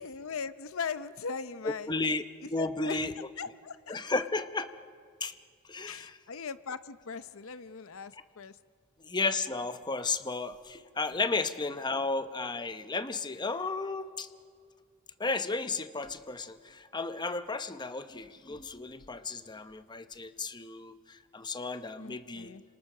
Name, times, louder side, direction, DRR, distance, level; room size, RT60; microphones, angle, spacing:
voice 1, 0.0-2.1 2.4-4.2 5.9-8.6 11.1-11.3 22.0-22.6, left 5 dB, 65° left, 13 dB, 0.7 m, -40 dB
voice 2, 1.6-2.2 2.5-3.1 3.9-4.7 5.2-5.3 5.7-6.1 9.0-14.3 15.2-22.5, left 3 dB, 20° left, 10 dB, 0.8 m, -33 dB
30.0 x 27.0 x 6.6 m, 2.2 s
head